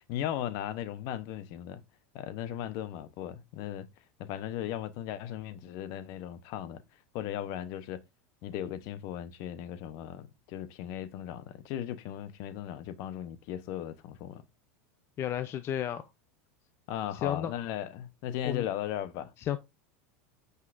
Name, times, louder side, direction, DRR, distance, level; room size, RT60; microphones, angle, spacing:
voice 1, 0.0-1.8 2.1-3.9 4.2-6.8 7.1-8.0 8.4-14.4 16.9-19.3, left 11 dB, 55° left, 0.9 m, -37 dB
voice 2, 15.2-16.0 17.2-17.5 18.4-18.6 19.4-19.6, left 10 dB, 35° left, 0.5 m, -32 dB
9.7 x 5.5 x 2.6 m
supercardioid pair, 125°, 7 cm